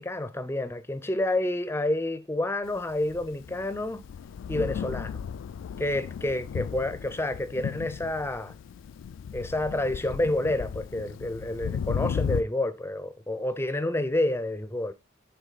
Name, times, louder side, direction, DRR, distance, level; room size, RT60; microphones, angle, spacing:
voice 1, 0.0-4.0 4.5-5.2 5.8-8.5 9.3-14.9, left 1 dB, 10° left, 0.5 m, -29 dB
Thunder, 2.9-12.4, left 7 dB, 80° left, 0.3 m, -35 dB
8.2 x 3.9 x 4.0 m
head